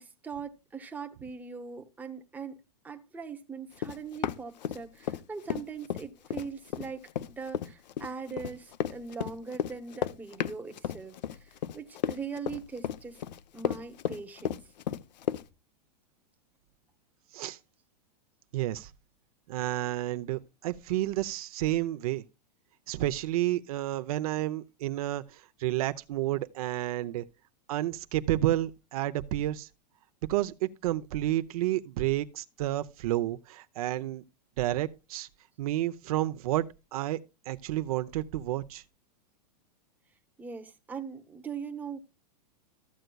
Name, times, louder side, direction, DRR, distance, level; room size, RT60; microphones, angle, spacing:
voice 1, 0.0-2.6 2.8-13.2 13.5-14.6 40.4-42.0, right 5 dB, 10° right, 0.9 m, -41 dB
Run, 3.8-5.2 5.5-15.4, left 10 dB, 85° left, 0.7 m, -33 dB
voice 2, 18.5-18.9 19.5-22.2 22.9-27.2 27.7-29.7 30.3-34.2 34.6-35.3 35.6-36.7 36.9-37.2 37.5-38.8, right 14 dB, 60° right, 0.7 m, -30 dB
14.0 x 7.8 x 2.3 m
supercardioid pair, 150°, 21 cm